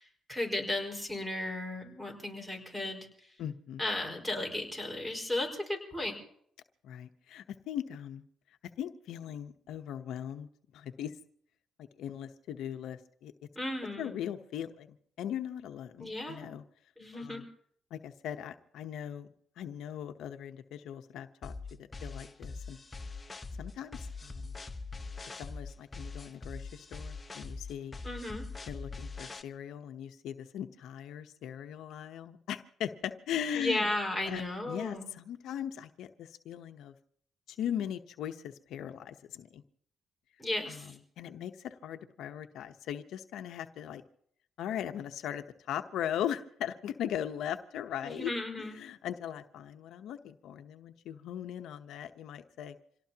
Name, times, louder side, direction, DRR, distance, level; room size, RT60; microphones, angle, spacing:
voice 1, 0.0-3.3 3.8-6.2 13.5-14.1 16.0-16.5 17.0-17.4 28.0-28.5 33.5-35.1 40.4-41.0 48.0-48.8, left 1 dB, 5° right, 3 dB, 5.0 m, -35 dB
voice 2, 3.4-3.8 6.8-8.2 8.8-10.5 10.7-11.2 11.8-13.3 14.0-16.6 17.1-17.4 17.9-19.3 19.6-22.8 23.6-24.5 25.4-27.9 28.7-33.9 34.3-34.4 34.7-36.9 37.5-39.6 40.7-40.8 41.2-44.0 44.6-48.3 48.6-52.8, left 10 dB, 80° left, 7 dB, 0.9 m, -39 dB
sound 1, 21.4-29.4, left 3 dB, 25° left, 1.1 m, -42 dB
26.5 x 18.0 x 2.9 m, 0.65 s
cardioid pair, 90°, 0 cm